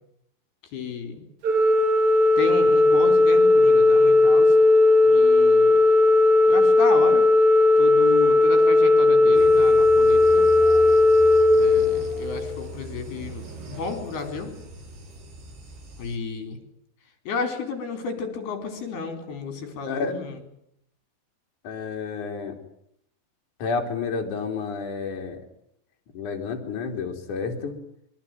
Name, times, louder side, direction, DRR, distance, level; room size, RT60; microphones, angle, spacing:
voice 1, 0.7-1.2 2.4-4.6 5.0-5.8 6.5-7.3 7.8-10.4 11.5-14.5 16.0-16.6 17.3-20.4, left 4 dB, 65° left, 7 dB, 6.1 m, -32 dB
Organ, 1.4-12.5, left 2 dB, 50° right, 3.0 m, -17 dB
sound 1, 9.3-16.2, right 1 dB, 85° right, 7.0 m, -40 dB
voice 2, 21.6-22.6 23.6-25.4 26.1-27.8, left 5 dB, 45° left, 2 dB, 4.5 m, -30 dB
25.0 x 22.5 x 9.2 m, 0.73 s
omnidirectional pair, 5.0 m